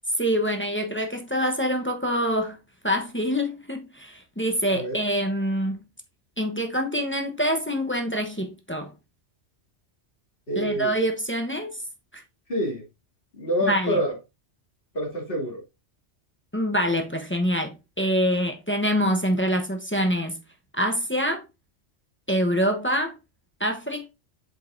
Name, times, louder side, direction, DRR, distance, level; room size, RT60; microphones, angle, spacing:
voice 1, 0.2-2.6 2.8-5.8 6.4-8.9 10.6-11.8 12.1-12.2 13.7-14.0 16.5-20.4 20.7-21.4 22.3-23.2 23.6-24.1, equal, 10° left, 0.9 m, -25 dB
voice 2, 10.5-10.9 12.5-12.8 13.3-14.1 14.9-15.6, equal, 50° left, 2.9 m, -26 dB
7.6 x 5.4 x 2.6 m
omnidirectional pair, 1.2 m